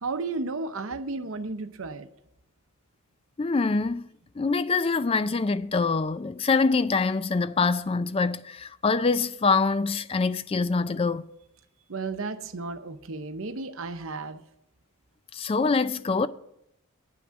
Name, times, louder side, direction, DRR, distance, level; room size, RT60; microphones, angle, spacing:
voice 1, 0.0-2.1 11.9-14.4, right 3 dB, 70° right, 0.8 m, -33 dB
voice 2, 3.4-11.2 15.3-16.3, left 4 dB, 25° left, 0.3 m, -25 dB
9.3 x 5.9 x 7.2 m
head